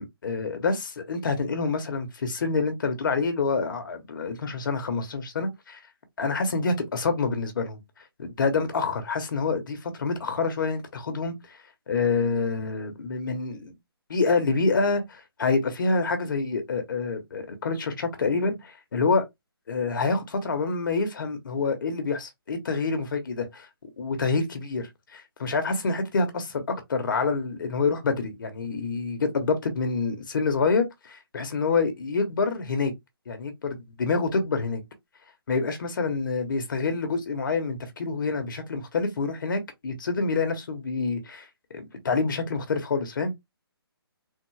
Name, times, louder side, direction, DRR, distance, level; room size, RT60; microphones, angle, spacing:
voice 1, 0.0-5.8 6.2-7.8 8.2-11.3 11.9-13.7 14.1-19.3 19.7-23.7 24.0-32.9 33.3-34.8 35.5-41.4 41.7-43.3, left 4 dB, 55° left, 1.0 m, -27 dB
3.5 x 2.0 x 3.2 m
hypercardioid pair, 160°, 13 cm